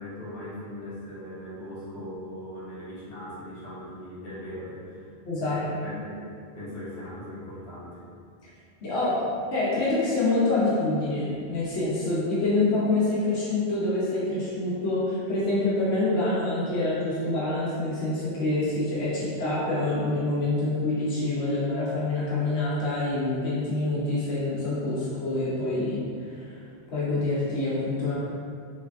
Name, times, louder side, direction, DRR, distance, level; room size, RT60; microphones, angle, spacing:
voice 1, 0.0-5.1 5.4-8.0, left 1 dB, 50° left, -9 dB, 1.1 m, -39 dB
voice 2, 5.2-5.6 8.8-9.1 9.5-26.6 26.9-28.2, left 2 dB, 85° left, -8 dB, 1.0 m, -26 dB
3.4 x 3.2 x 2.4 m, 2.3 s
omnidirectional pair, 1.1 m